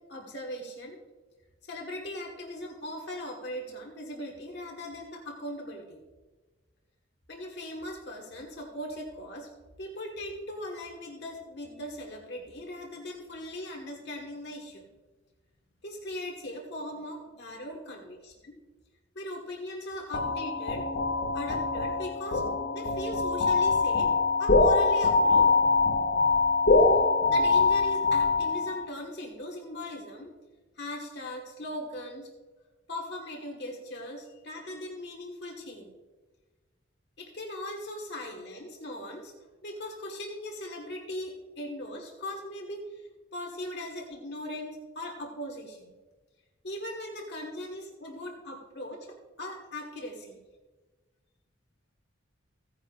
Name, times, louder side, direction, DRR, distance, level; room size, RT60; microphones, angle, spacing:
voice 1, 0.1-1.0 1.6-6.0 7.3-9.5 9.8-14.9 15.8-18.6 19.1-20.9 21.3-24.1 24.4-25.6 27.2-30.3 30.8-32.3 32.9-35.9 37.2-39.3 39.6-45.9 46.6-50.4, left 1 dB, 60° left, 0 dB, 1.5 m, -39 dB
sound 1, 20.1-28.8, left 3 dB, 75° left, 2.0 m, -24 dB
16.5 x 9.5 x 2.4 m, 1.2 s
head